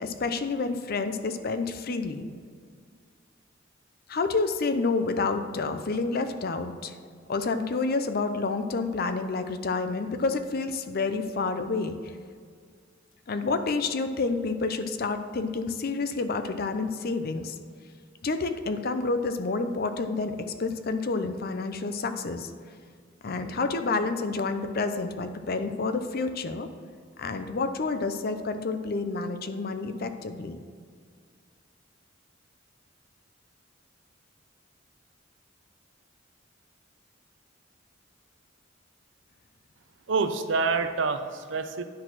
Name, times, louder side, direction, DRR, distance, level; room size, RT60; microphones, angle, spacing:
voice 1, 0.0-2.3 4.1-6.9 7.3-12.0 13.3-17.6 18.2-22.5 23.2-26.7 27.2-30.6, left 3 dB, 50° left, 9 dB, 0.6 m, -29 dB
voice 2, 40.1-41.8, right 4 dB, 70° right, 8 dB, 0.6 m, -27 dB
10.5 x 4.1 x 6.0 m, 2.1 s
head